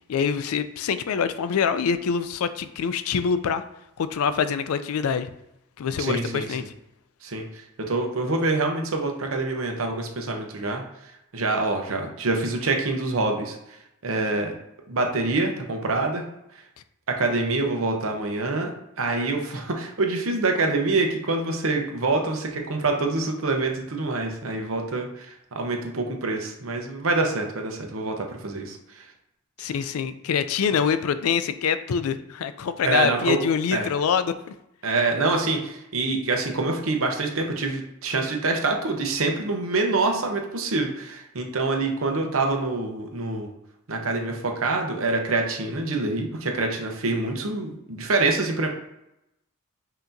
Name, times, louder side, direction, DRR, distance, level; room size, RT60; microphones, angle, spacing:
voice 1, 0.1-3.6 4.0-5.3 5.8-6.6 29.6-34.4, left 6 dB, 80° left, 12 dB, 0.4 m, -25 dB
voice 2, 6.0-6.6 7.2-10.8 11.3-13.8 14.0-14.5 14.9-16.2 17.1-29.0 29.6-29.7 32.8-33.4 33.7-33.9 34.8-43.5 43.9-48.7, right 3 dB, 75° right, 3 dB, 0.8 m, -26 dB
5.6 x 2.8 x 2.6 m, 0.86 s
head